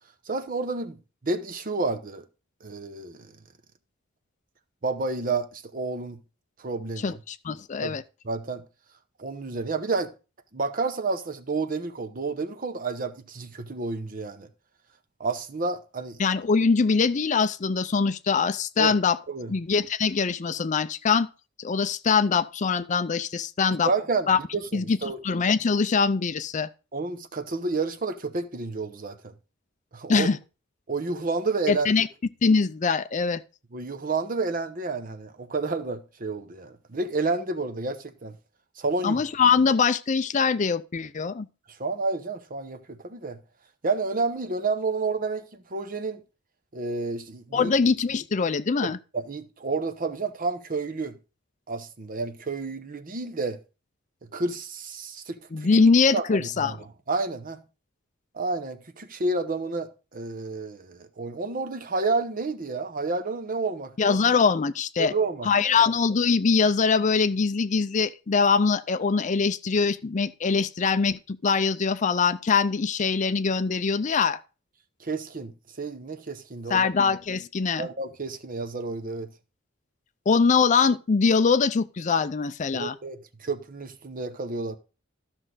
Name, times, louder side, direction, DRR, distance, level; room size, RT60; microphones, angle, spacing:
voice 1, 0.3-2.2 2.6-3.3 4.8-6.2 6.6-7.2 7.8-8.0 8.2-8.6 9.2-10.1 10.5-14.5 15.2-16.2 18.8-19.0 19.3-19.5 23.8-25.2 26.9-29.3 29.9-30.3 30.9-31.9 33.7-38.4 38.8-39.2 41.7-43.4 43.8-46.2 46.7-47.7 48.8-51.2 51.7-53.6 54.3-55.7 56.1-56.8 57.1-57.6 58.3-64.2 65.0-65.9 75.0-76.9 77.8-79.3 82.7-84.8, right 3 dB, 45° right, 0.9 m, -30 dB
voice 2, 7.0-8.0 16.2-19.2 19.5-21.3 21.6-23.9 24.3-24.4 24.7-25.0 25.2-26.7 30.1-30.4 31.7-32.1 32.4-33.4 39.0-41.5 47.5-49.0 55.5-56.8 64.0-65.1 65.4-74.4 76.7-77.9 80.3-82.9, left 5 dB, 35° left, 0.5 m, -23 dB
13.5 x 6.3 x 4.0 m
head